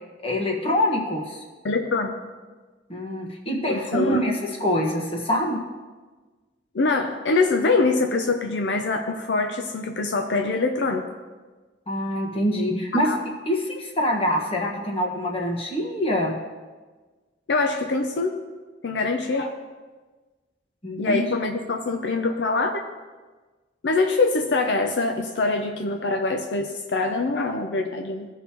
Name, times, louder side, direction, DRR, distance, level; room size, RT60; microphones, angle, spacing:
voice 1, 0.2-1.4 2.9-5.6 11.9-13.1 13.5-16.3 20.8-21.2, equal, 35° left, -1 dB, 1.5 m, -25 dB
voice 2, 1.6-2.2 3.7-4.4 6.7-11.1 13.0-13.2 17.5-18.4 18.8-19.5 21.0-22.8 23.8-28.3, left 3 dB, 75° left, 4 dB, 0.6 m, -24 dB
16.0 x 5.4 x 3.0 m, 1.3 s
head